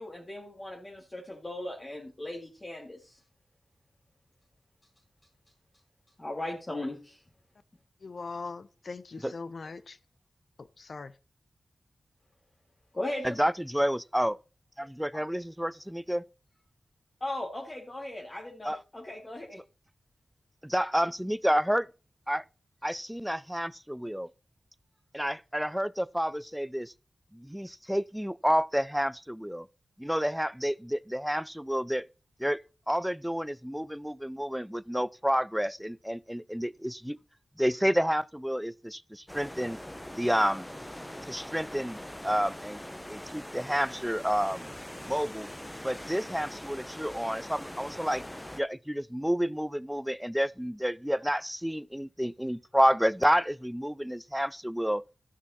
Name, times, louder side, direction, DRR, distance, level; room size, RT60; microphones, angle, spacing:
voice 1, 0.0-3.2 6.2-7.2 12.9-13.3 15.1-15.2 17.2-19.6, left 1 dB, 35° left, 2.2 m, -38 dB
voice 2, 8.0-10.0 10.6-11.1, left 4 dB, 65° left, 0.7 m, -41 dB
voice 3, 13.2-14.4 14.8-16.2 18.6-18.8 20.6-21.9 22.3-22.4 22.8-24.3 25.1-26.9 27.3-29.7 30.0-32.1 32.4-37.2 37.6-39.8 40.2-40.7 41.3-42.8 43.1-44.7 45.0-45.5 45.8-48.2 48.5-55.0, equal, 5° right, 0.4 m, -29 dB
sound 1, 39.3-48.6, left 1 dB, 10° left, 0.8 m, -42 dB
12.5 x 6.1 x 4.2 m
cardioid pair, 50°, 0 cm